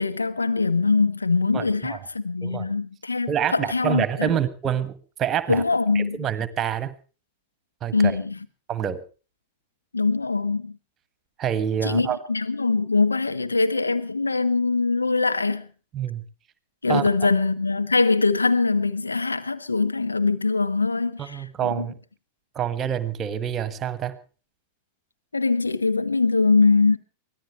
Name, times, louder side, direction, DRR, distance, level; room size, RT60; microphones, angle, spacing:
voice 1, 0.0-4.4 5.5-6.3 7.9-8.4 9.9-10.8 11.8-15.7 16.8-21.9 25.3-27.0, left 3 dB, 80° left, 1.2 m, -22 dB
voice 2, 1.5-2.0 2.4-2.7 3.3-5.6 5.9-6.9 7.8-8.2 8.7-9.0 11.4-12.2 15.9-16.2 16.9-17.0 21.2-21.9 22.5-24.2, right 9 dB, 25° right, 1.4 m, -27 dB
24.0 x 17.0 x 3.2 m
figure-of-eight pair, 90°, 0 cm